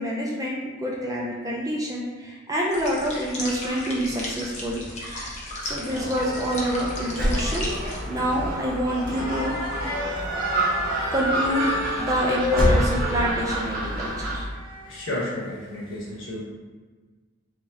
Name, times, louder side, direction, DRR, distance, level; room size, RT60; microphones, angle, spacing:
voice 1, 0.0-9.8 11.1-11.7 12.0-14.5, equal, 15° right, -3 dB, 0.4 m, -27 dB
sound 1, 2.7-8.0, left 1 dB, 30° left, 0.7 m, -35 dB
Gull seagull, 5.9-14.4, right 1 dB, 40° right, 0.8 m, -27 dB
sound 2, 6.6-7.2 7.5-7.6 8.0-8.2 8.5-8.7 9.0-15.0, left 2 dB, 75° left, 0.9 m, -32 dB
voice 2, 14.9-16.4, left 1 dB, 60° left, -5 dB, 1.1 m, -32 dB
3.2 x 2.7 x 3.4 m, 1.4 s
head